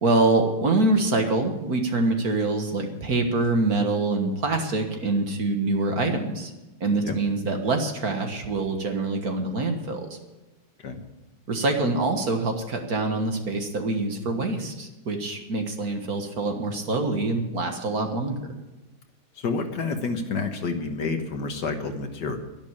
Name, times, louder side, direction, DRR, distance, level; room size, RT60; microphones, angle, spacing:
voice 1, 0.0-6.5 6.8-10.1 11.5-18.6, right 2 dB, 50° right, 4 dB, 1.8 m, -25 dB
voice 2, 19.4-22.4, left 4 dB, 60° left, 6 dB, 1.7 m, -29 dB
11.5 x 11.0 x 8.7 m, 1.0 s
omnidirectional pair, 2.2 m